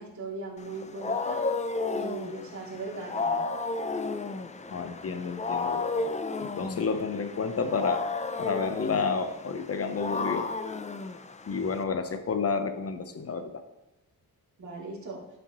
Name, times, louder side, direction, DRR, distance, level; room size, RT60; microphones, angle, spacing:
voice 1, 0.0-1.4 1.9-3.4 14.6-15.2, right 3 dB, 50° right, -4 dB, 2.9 m, -38 dB
Wild animals, 0.6-11.8, left 3 dB, 20° left, 0.5 m, -33 dB
voice 2, 4.7-8.1 8.4-10.5 11.4-13.5, left 5 dB, 40° left, 9 dB, 0.9 m, -30 dB
11.5 x 6.6 x 3.1 m, 1.0 s
cardioid pair, 110°, 37 cm